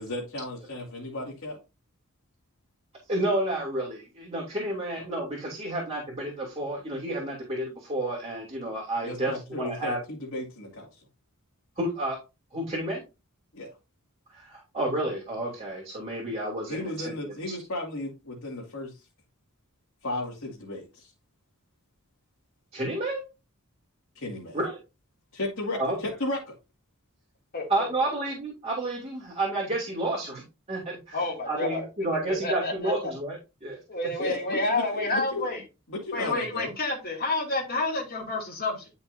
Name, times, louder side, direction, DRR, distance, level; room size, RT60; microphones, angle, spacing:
voice 1, 0.0-1.6 9.0-11.0 13.5-13.7 16.7-19.1 20.0-21.1 24.1-24.6 25.3-26.5 34.2-35.5 35.9-36.7, left 2 dB, 65° left, -3 dB, 2.4 m, -34 dB
voice 2, 3.1-10.0 11.8-12.2 12.5-13.0 14.3-17.3 22.7-23.2 24.5-24.8 25.7-26.0 27.7-33.8 34.2-34.3, right 1 dB, 30° right, -3 dB, 2.9 m, -30 dB
voice 3, 27.5-28.1 31.1-31.8 32.2-33.1 33.9-35.6 36.1-38.9, left 2 dB, 45° left, -1 dB, 2.8 m, -29 dB
11.5 x 5.5 x 2.7 m, 0.27 s
head